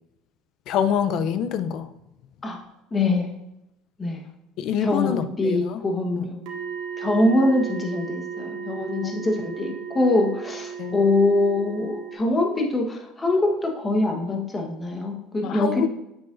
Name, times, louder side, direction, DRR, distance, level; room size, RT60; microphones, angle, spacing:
voice 1, 0.7-1.9 4.6-5.8 6.2-6.3 9.0-9.1 10.8-11.0 15.4-15.9, left 8 dB, 50° left, 11 dB, 0.5 m, -26 dB
voice 2, 2.9-3.3 4.0-4.2 4.8-6.4 7.0-15.9, left 2 dB, 15° left, 2 dB, 1.3 m, -23 dB
sound 1, 6.5-12.2, right 7 dB, 65° right, 1.9 m, -35 dB
9.0 x 8.0 x 2.6 m, 0.88 s
cardioid pair, 140°, 0 cm